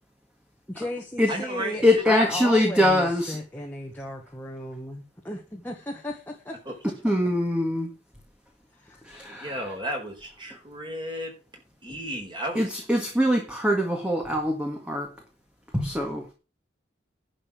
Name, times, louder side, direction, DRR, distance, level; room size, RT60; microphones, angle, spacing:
voice 1, 0.7-6.6 8.8-9.0, left 1 dB, 10° left, 1.5 m, -35 dB
voice 2, 1.3-2.5 6.6-6.7 9.4-11.3 11.8-12.7, right 1 dB, 25° right, 4.6 m, -34 dB
voice 3, 1.8-3.4 7.0-7.9 9.1-9.6 12.6-15.1 15.7-16.2, left 1 dB, 5° right, 1.8 m, -23 dB
11.0 x 5.5 x 7.5 m
head